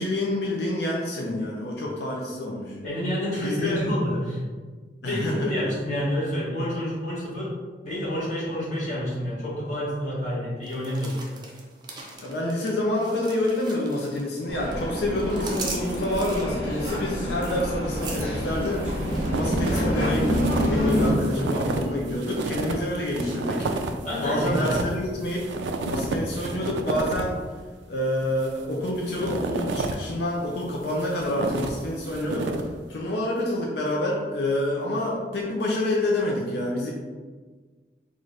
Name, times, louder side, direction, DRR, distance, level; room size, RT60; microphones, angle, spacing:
voice 1, 0.0-2.8 3.4-3.8 5.0-5.5 12.2-19.0 19.3-23.6 24.2-27.4 27.9-32.5 32.9-36.9, left 1 dB, 65° left, -3 dB, 0.5 m, -27 dB
voice 2, 2.8-4.4 5.0-7.5 7.8-11.2 24.0-24.8, equal, 40° left, -8 dB, 1.4 m, -28 dB
sound 1, 10.6-14.4 14.7-21.7 21.9-22.3 22.7-23.4 23.8-23.9, right 3 dB, 25° right, 0.5 m, -41 dB
sound 2, 14.5-21.1, equal, 90° left, 1.3 m, -27 dB
sound 3, 18.4-19.8 20.0-27.4 28.2-30.1 30.6-32.8, right 3 dB, 90° right, 0.4 m, -31 dB
3.8 x 2.5 x 3.2 m, 1.4 s
head